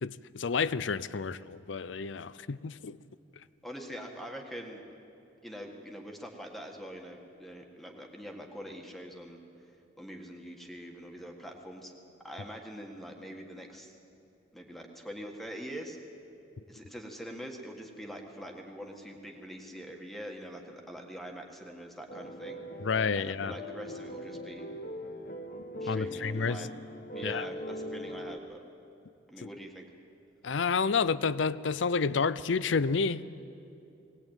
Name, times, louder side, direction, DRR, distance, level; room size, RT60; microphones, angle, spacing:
voice 1, 0.0-3.0 22.8-23.5 25.9-26.6 27.2-27.5 30.4-33.2, left 5 dB, 75° left, 17 dB, 0.6 m, -30 dB
voice 2, 3.6-4.8 5.4-9.4 10.0-11.9 12.2-13.9 14.5-16.0 16.7-22.6 23.2-24.7 25.8-26.7 27.1-28.6 29.3-29.9, equal, ahead, 1 dB, 1.8 m, -44 dB
sound 1, 22.1-28.4, equal, 55° left, 1.3 m, -40 dB
20.5 x 18.5 x 9.0 m, 2.7 s
head